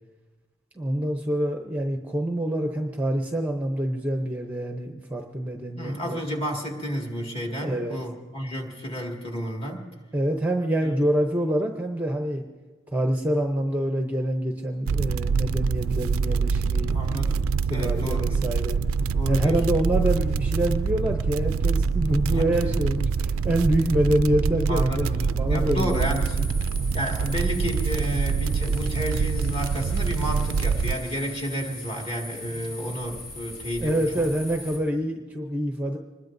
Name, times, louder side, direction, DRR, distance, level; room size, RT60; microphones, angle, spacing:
voice 1, 0.7-6.2 7.6-8.1 10.1-12.4 12.9-18.8 19.3-26.1 33.8-36.0, right 1 dB, 10° right, 2 dB, 0.7 m, -26 dB
voice 2, 5.8-9.9 10.8-10.9 16.9-18.5 19.1-19.6 22.3-22.8 24.7-26.5 26.9-34.3, equal, 25° left, 1 dB, 2.1 m, -31 dB
sound 1, 14.9-31.0, right 5 dB, 75° right, 0.4 m, -25 dB
sound 2, 25.9-34.8, left 2 dB, 70° left, 3.5 m, -40 dB
25.5 x 20.5 x 2.6 m, 1.3 s
head